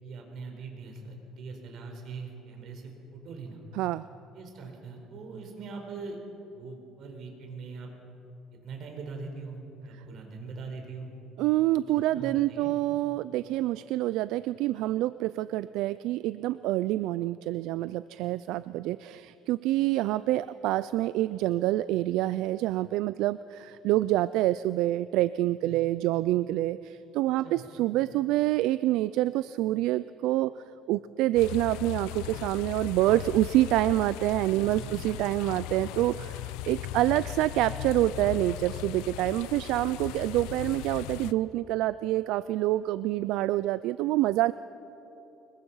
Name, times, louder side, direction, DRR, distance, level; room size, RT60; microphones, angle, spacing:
voice 1, 0.0-3.6 4.3-6.2 6.5-7.9 8.5-11.1 11.9-12.7 25.7-26.0 27.4-27.6 34.6-35.0, right 4 dB, 50° right, 3 dB, 4.3 m, -42 dB
voice 2, 11.4-30.5 30.9-44.5, right 15 dB, 70° right, 15 dB, 0.4 m, -27 dB
sound 1, 31.3-41.3, left 14 dB, 90° left, 0.5 m, -38 dB
25.0 x 22.0 x 5.6 m, 3.0 s
cardioid pair, 140°, 0 cm